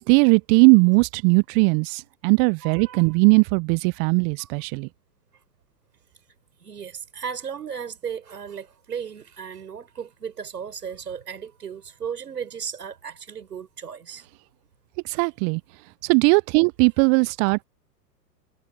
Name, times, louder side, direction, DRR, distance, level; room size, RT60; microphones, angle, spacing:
voice 1, 0.0-4.9 15.1-15.6 16.0-17.6, right 36 dB, 15° right, 0.5 m, -19 dB
voice 2, 2.6-3.1 4.4-4.5 6.6-14.3 15.1-15.2, right 7 dB, 70° right, 5.3 m, -35 dB
figure-of-eight pair, 110°, 49 cm